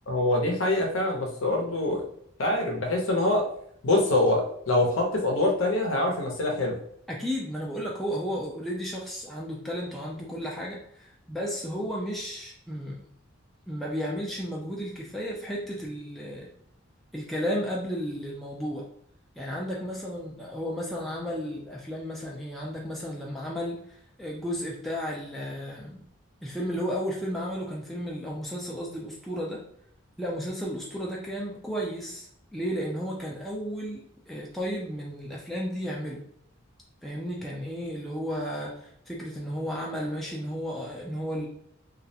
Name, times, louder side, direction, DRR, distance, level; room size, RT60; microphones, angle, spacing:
voice 1, 0.1-2.0 2.4-3.4 3.8-6.8, left 2 dB, 70° left, 1 dB, 0.6 m, -24 dB
voice 2, 7.1-13.0 13.7-16.5 17.1-18.9 19.4-26.0 26.4-29.6 30.2-36.2 37.0-41.5, equal, ahead, -4 dB, 0.3 m, -33 dB
2.3 x 2.1 x 2.6 m, 0.67 s
head